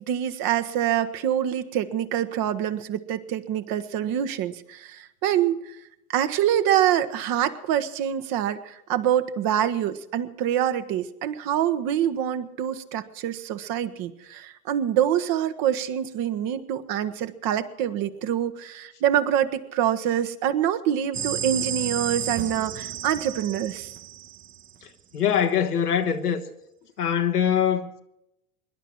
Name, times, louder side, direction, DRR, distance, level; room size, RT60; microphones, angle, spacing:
voice 1, 0.1-5.8 6.1-23.9, right 10 dB, 50° right, 1.4 m, -25 dB
sound 1, 21.1-24.8, right 9 dB, 25° right, 1.0 m, -32 dB
voice 2, 24.8-26.4 27.0-28.0, left 8 dB, 85° left, 1.3 m, -23 dB
24.0 x 11.5 x 4.6 m
figure-of-eight pair, 70°, 45 cm